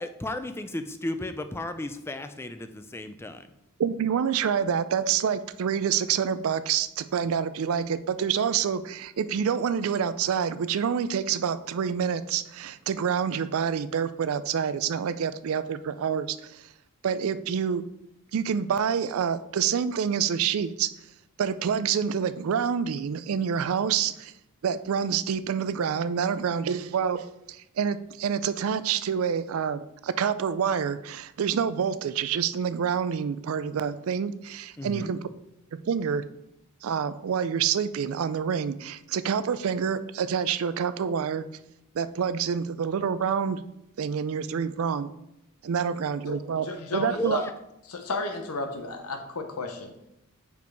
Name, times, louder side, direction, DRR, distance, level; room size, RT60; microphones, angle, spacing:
voice 1, 0.0-3.5 34.8-35.1 47.1-47.5, left 1 dB, 10° left, 9 dB, 0.3 m, -34 dB
voice 2, 3.8-16.6 17.0-17.9 18.3-20.9 21.4-24.3 24.6-35.2 35.9-36.2 36.8-41.4 41.9-43.6 44.0-45.1 45.6-46.7 46.9-47.4, right 7 dB, 65° right, 14 dB, 0.4 m, -27 dB
voice 3, 46.6-47.4 47.9-49.9, left 3 dB, 85° left, 5 dB, 0.9 m, -33 dB
5.3 x 4.9 x 4.6 m, 0.84 s
head